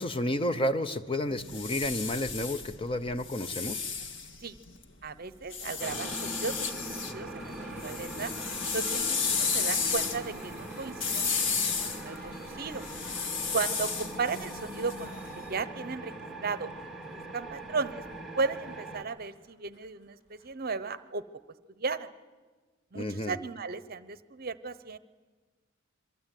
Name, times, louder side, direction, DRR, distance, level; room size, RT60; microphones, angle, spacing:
voice 1, 0.0-3.8 22.9-23.4, left 1 dB, 25° left, 10 dB, 0.8 m, -31 dB
sound 1, 1.3-4.8 5.5-7.2 7.5-15.4, left 5 dB, 70° left, 1.8 m, -33 dB
voice 2, 5.0-8.3 8.7-12.8 13.5-16.1 16.4-16.7 17.1-18.0 18.4-21.2 21.8-22.1 22.9-25.0, right 4 dB, 50° right, 14 dB, 0.8 m, -35 dB
sound 2, 5.8-19.0, right 1 dB, ahead, 2.5 m, -41 dB
sound 3, 7.3-20.5, equal, 55° left, 6.6 m, -53 dB
26.5 x 23.5 x 9.2 m, 1.4 s
head